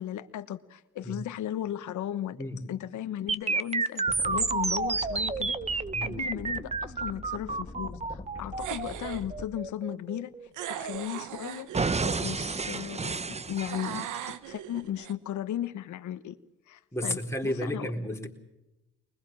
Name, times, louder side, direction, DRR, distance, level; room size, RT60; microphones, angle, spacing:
voice 1, 0.0-2.4 2.7-10.3 10.7-11.7 12.2-14.1 14.5-16.4 16.7-17.9, left 11 dB, 75° left, 11 dB, 1.2 m, -36 dB
voice 2, 2.3-2.6 5.9-6.2 16.9-18.3, left 1 dB, 10° left, 1 dB, 4.1 m, -32 dB
sound 1, 3.3-11.2 11.7-14.3, right 4 dB, 20° right, 0.9 m, -31 dB
sound 2, 4.1-9.5, left 2 dB, 25° left, 2.0 m, -43 dB
sound 3, 8.6-9.3 10.5-12.2 13.7-15.1, right 10 dB, 85° right, 1.3 m, -38 dB
23.0 x 20.5 x 7.4 m, 0.96 s
cardioid pair, 90°, 30 cm